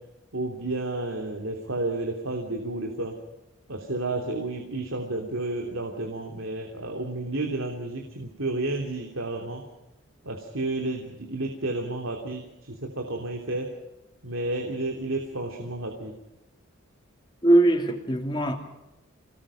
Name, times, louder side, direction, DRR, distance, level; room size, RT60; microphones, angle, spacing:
voice 1, 0.3-3.2 3.7-9.6 10.2-13.7 14.2-16.1, right 2 dB, 80° right, 3 dB, 3.2 m, -31 dB
voice 2, 17.4-18.6, right 1 dB, 20° left, 3 dB, 3.0 m, -21 dB
28.5 x 19.5 x 5.8 m, 0.93 s
head